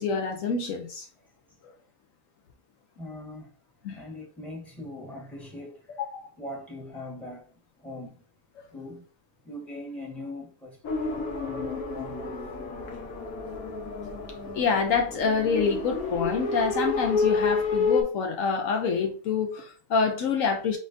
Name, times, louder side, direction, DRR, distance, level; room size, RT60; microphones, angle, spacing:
voice 1, 0.0-1.0 3.8-4.0 6.0-6.3 14.5-20.8, left 5 dB, 70° left, 1.0 m, -26 dB
voice 2, 1.2-1.7 3.0-3.5 3.9-6.0 6.4-8.3 8.7-9.1 9.4-12.5, left 1 dB, ahead, 1.3 m, -41 dB
sound 1, 10.8-18.0, left 4 dB, 90° left, 1.3 m, -29 dB
4.2 x 3.6 x 2.6 m
omnidirectional pair, 1.5 m